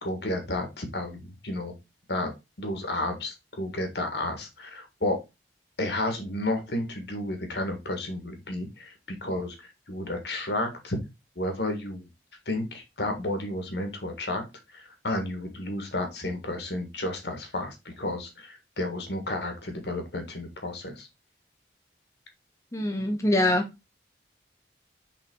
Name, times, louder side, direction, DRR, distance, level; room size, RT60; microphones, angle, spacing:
voice 1, 0.0-1.7 2.1-2.3 2.6-5.2 5.8-11.0 11.4-12.1 12.5-14.5 14.7-21.1, left 1 dB, 65° left, 5 dB, 1.7 m, -32 dB
voice 2, 22.7-23.6, left 1 dB, 15° left, 2 dB, 0.7 m, -24 dB
5.8 x 3.8 x 4.5 m, 0.24 s
head